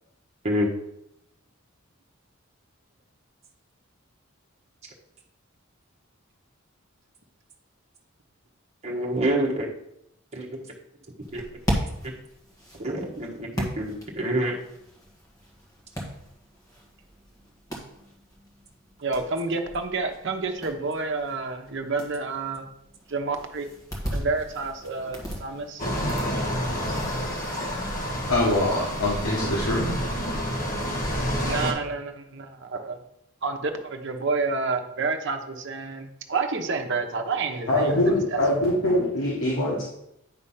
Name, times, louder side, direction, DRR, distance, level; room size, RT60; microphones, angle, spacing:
voice 1, 8.8-9.7 10.3-10.5 11.3-11.4 12.7-14.5, right 1 dB, 30° right, -3 dB, 1.3 m, -27 dB
sound 1, 11.2-27.6, equal, 15° left, 1.5 m, -37 dB
voice 2, 19.0-22.7 23.1-23.7 24.1-25.8 31.4-33.0 33.4-38.4, right 4 dB, 60° right, 5 dB, 0.9 m, -29 dB
sound 2, 25.8-31.7, equal, 40° left, 1.6 m, -28 dB
voice 3, 28.3-30.0 37.7-39.8, left 1 dB, 90° left, -4 dB, 1.6 m, -23 dB
9.4 x 3.4 x 5.6 m, 0.79 s
head